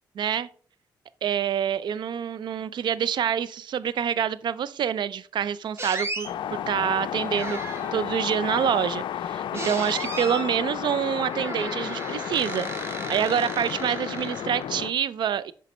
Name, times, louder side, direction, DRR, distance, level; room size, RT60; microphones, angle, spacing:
voice 1, 0.2-0.5 1.2-15.5, right 8 dB, 65° right, 0.4 m, -27 dB
sound 1, 5.8-6.3 7.3-8.1 9.5-10.5 11.3-14.7, right 2 dB, 30° right, 1.6 m, -35 dB
sound 2, 6.2-14.9, left 10 dB, 70° left, 0.4 m, -32 dB
6.5 x 5.3 x 3.1 m
supercardioid pair, 60°, 8 cm